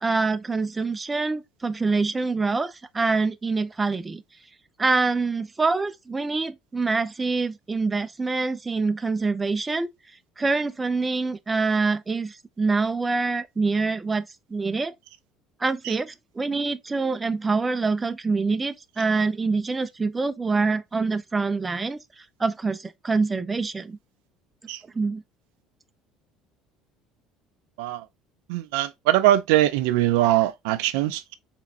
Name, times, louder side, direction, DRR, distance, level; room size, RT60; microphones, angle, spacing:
voice 1, 0.0-4.2 4.8-9.9 10.4-14.9 15.6-24.0 24.9-25.2, right 4 dB, 20° right, 0.5 m, -25 dB
voice 2, 28.5-31.3, right 14 dB, 75° right, 0.4 m, -22 dB
3.9 x 3.4 x 2.8 m
hypercardioid pair, 65°, 0 cm